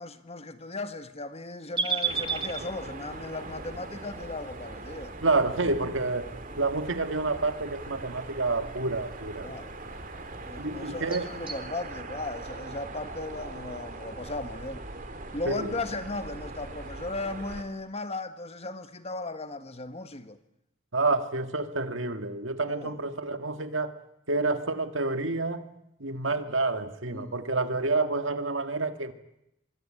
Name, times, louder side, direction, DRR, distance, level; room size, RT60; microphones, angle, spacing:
voice 1, 0.0-5.1 9.4-9.7 10.5-14.9 15.3-20.4 22.7-23.0 27.1-27.3, left 2 dB, 30° left, 1.5 m, -36 dB
sound 1, 1.7-11.6, right 5 dB, 25° right, 1.9 m, -38 dB
sound 2, 2.0-17.6, right 2 dB, 45° right, 3.0 m, -41 dB
voice 2, 5.2-9.5 10.6-11.3 15.5-15.8 20.9-23.9 24.3-25.7 26.0-29.1, right 3 dB, 70° right, 1.9 m, -28 dB
24.0 x 23.5 x 9.0 m
head